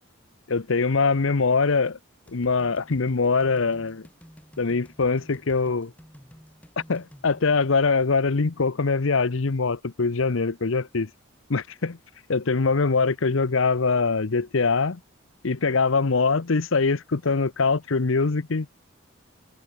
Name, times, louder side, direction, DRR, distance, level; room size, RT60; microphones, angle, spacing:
voice 1, 0.5-2.0 2.3-4.1 4.6-5.9 6.9-11.1 11.5-12.0 12.3-15.0 15.4-18.7, left 4 dB, 70° left, 0.8 m, -23 dB
sound 1, 2.3-7.4, equal, 5° left, 3.8 m, -51 dB
head